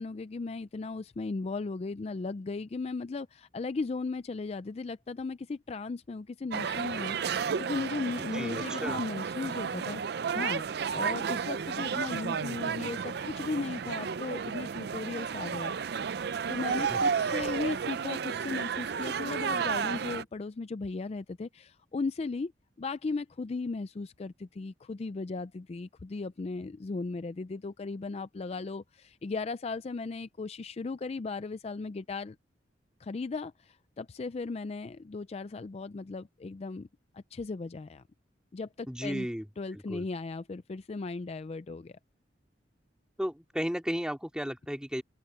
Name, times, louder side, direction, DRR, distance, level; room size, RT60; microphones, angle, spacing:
voice 1, 0.0-10.6 10.9-15.7 16.5-22.5 22.8-32.4 33.0-36.9 37.1-38.0 38.5-39.3 39.6-42.0, left 3 dB, 35° left, 0.4 m, -36 dB
sound 1, 6.5-20.2, right 6 dB, 60° right, 0.5 m, -32 dB
voice 2, 8.3-9.0 16.9-17.2 38.9-39.5 39.7-40.1 43.2-45.0, equal, 5° right, 2.3 m, -34 dB
open air
head